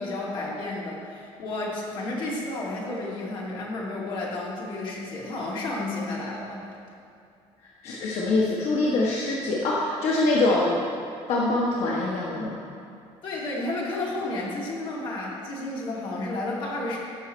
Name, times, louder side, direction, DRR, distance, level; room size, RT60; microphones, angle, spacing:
voice 1, 0.0-6.7 13.2-17.0, left 2 dB, 45° left, -4 dB, 2.4 m, -32 dB
voice 2, 7.8-10.8 11.3-12.6, left 2 dB, 70° left, -4 dB, 1.3 m, -24 dB
16.5 x 6.4 x 4.4 m, 2.5 s
cardioid pair, 175°, 11 cm